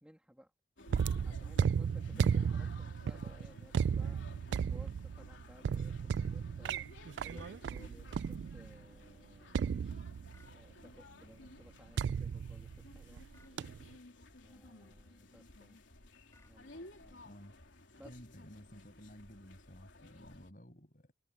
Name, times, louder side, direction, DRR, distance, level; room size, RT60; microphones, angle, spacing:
voice 1, 0.0-0.5 1.2-10.1 10.5-13.2 14.4-15.8 16.3-17.4 18.0-18.5, equal, 5° right, 3.0 m, -59 dB
sound 1, 0.8-20.5, left 2 dB, 80° left, 3.4 m, -56 dB
sound 2, 0.9-8.8 9.5-10.5 12.0-13.2 13.6-13.9, right 7 dB, 65° right, 0.3 m, -34 dB
sound 3, 7.3-7.6 10.3-10.6 13.3-13.6 16.3-16.6, left 2 dB, 15° left, 3.6 m, -64 dB
voice 2, 17.2-17.5 18.0-21.1, equal, 45° left, 7.3 m, -54 dB
head